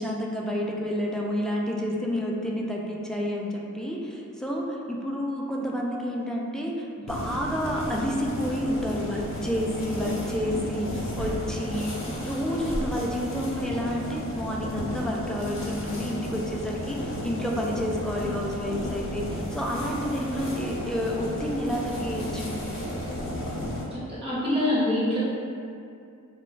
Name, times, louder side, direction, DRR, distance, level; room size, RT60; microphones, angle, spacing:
voice 1, 0.0-22.6, equal, ahead, -3 dB, 0.4 m, -30 dB
sound 1, 7.1-23.8, equal, 40° left, 0.8 m, -33 dB
voice 2, 23.9-25.2, left 1 dB, 15° right, -10 dB, 1.0 m, -25 dB
2.3 x 2.1 x 3.8 m, 2.5 s
cardioid pair, 50°, 33 cm